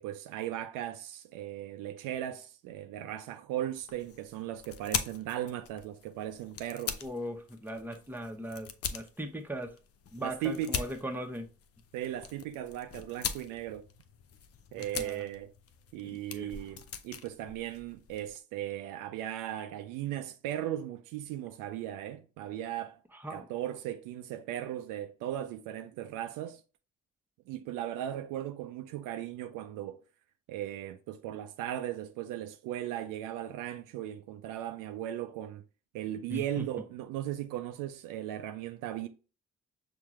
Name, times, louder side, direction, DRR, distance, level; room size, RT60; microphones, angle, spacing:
voice 1, 0.0-7.0 10.2-10.9 11.9-13.9 14.7-15.5 15.9-23.0 23.3-26.6 27.5-30.0 30.5-35.6 35.9-39.1, right 12 dB, 75° right, 0.5 m, -37 dB
sound 1, 3.8-18.4, left 7 dB, 45° left, 0.6 m, -42 dB
voice 2, 7.0-9.7 10.1-11.5 14.9-15.3 16.0-16.5 23.1-23.5 36.3-36.7, equal, 5° right, 0.9 m, -39 dB
5.8 x 2.5 x 3.0 m
hypercardioid pair, 40°, 32 cm